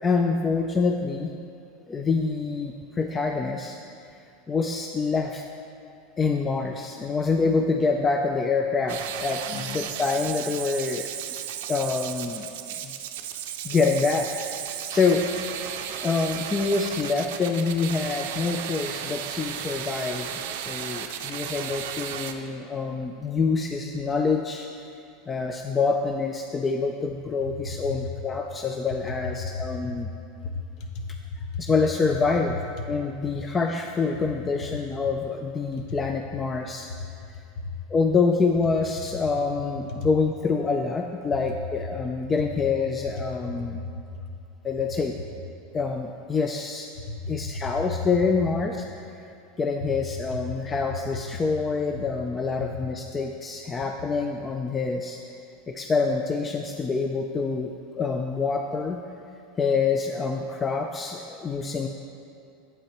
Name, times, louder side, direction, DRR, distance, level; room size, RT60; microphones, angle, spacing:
voice 1, 0.0-1.3 1.9-3.8 4.5-5.4 6.2-11.1 11.7-12.5 12.8-12.9 13.6-14.6 14.9-15.3 16.0-24.7 25.3-30.1 31.6-32.5 32.9-36.9 37.9-43.8 44.6-45.2 45.7-46.9 47.3-48.8 49.6-55.2 55.7-59.0 59.6-61.9, left 4 dB, 20° left, 3 dB, 0.4 m, -26 dB
sound 1, 8.9-22.3, right 10 dB, 75° right, 0.5 m, -34 dB
voice 2, 9.5-9.8 27.6-28.0 29.4-30.1 30.4-31.6 35.7-36.0 36.9-37.1 37.6-37.7 40.0-40.1 43.5-44.1 47.0-47.6 50.8-50.9, left 3 dB, 50° left, 4 dB, 0.9 m, -35 dB
8.8 x 8.2 x 3.0 m, 2.5 s
supercardioid pair, 130°, 0 cm